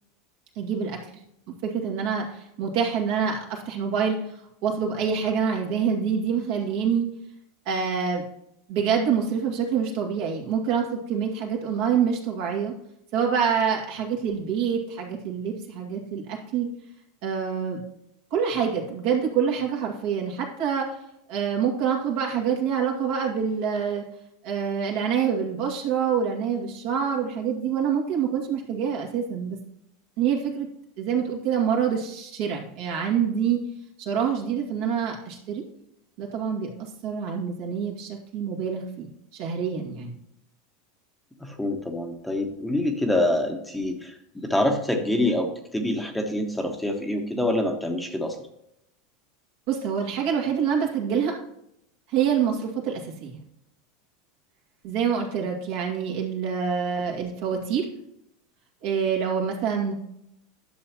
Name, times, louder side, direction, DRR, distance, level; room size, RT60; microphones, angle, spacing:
voice 1, 0.6-1.0 1.6-4.2 4.6-7.1 7.7-8.2 8.7-12.7 13.1-16.7 17.2-17.8 18.3-21.0 21.3-24.0 24.4-29.6 30.2-30.7 31.0-33.6 34.0-35.6 36.2-40.1 49.7-51.4 52.1-53.4 54.8-57.9 58.8-59.9, right 7 dB, 60° right, 0 dB, 2.2 m, -26 dB
voice 2, 41.4-48.4, left 1 dB, 5° left, 3 dB, 1.4 m, -26 dB
11.5 x 6.9 x 2.9 m, 0.77 s
hypercardioid pair, 85°, 0 cm